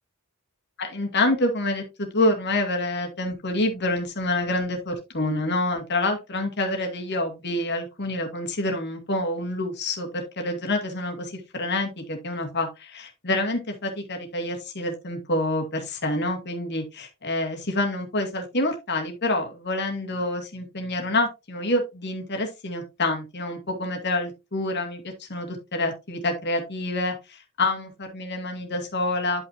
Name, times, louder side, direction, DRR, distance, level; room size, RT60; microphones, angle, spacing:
voice 1, 0.8-29.4, left 2 dB, 50° left, 3 dB, 2.3 m, -27 dB
10.5 x 5.7 x 2.9 m, 0.24 s
head